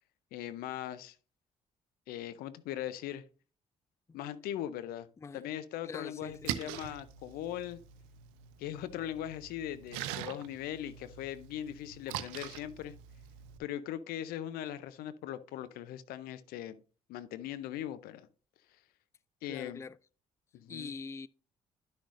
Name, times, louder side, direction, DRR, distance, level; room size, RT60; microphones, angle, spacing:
voice 1, 0.3-1.2 2.1-3.2 4.1-5.1 5.3-7.8 8.6-12.9 13.6-16.8 17.1-18.3 19.4-19.8 20.5-20.9, left 11 dB, 75° left, 0.6 m, -40 dB
voice 2, 5.2-5.6 5.8-6.7 19.5-20.0 20.7-21.3, left 4 dB, 20° left, 0.3 m, -44 dB
Splash splatter, 6.2-13.6, right 11 dB, 85° right, 0.6 m, -43 dB
11.0 x 6.3 x 2.5 m
hypercardioid pair, 50°, 16 cm